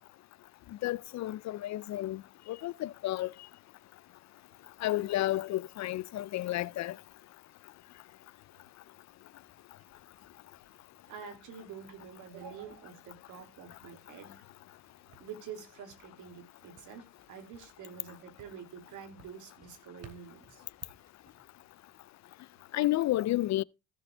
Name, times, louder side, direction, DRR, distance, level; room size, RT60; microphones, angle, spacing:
voice 1, 0.8-2.2 2.5-3.3 4.8-7.0 22.7-23.6, left 15 dB, 65° left, 0.4 m, -31 dB
sound 1, 9.4-21.9, right 6 dB, 55° right, 2.8 m, -63 dB
voice 2, 11.1-14.4 15.2-20.6, right 7 dB, 85° right, 2.8 m, -47 dB
15.5 x 6.9 x 3.4 m
cardioid pair, 90°, 30 cm